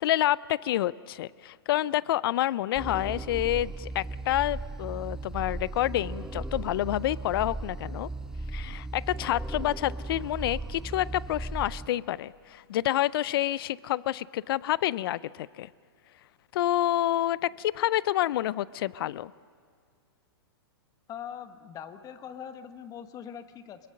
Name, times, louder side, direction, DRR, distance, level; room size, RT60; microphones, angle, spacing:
voice 1, 0.0-8.1 8.5-15.7 16.5-19.3, left 14 dB, 65° left, 22 dB, 0.4 m, -28 dB
sound 1, 2.7-11.9, right 2 dB, 5° right, 0.5 m, -36 dB
voice 2, 21.1-23.9, left 8 dB, 25° left, 10 dB, 1.0 m, -42 dB
22.5 x 21.5 x 6.5 m, 2.1 s
hypercardioid pair, 125°, 13 cm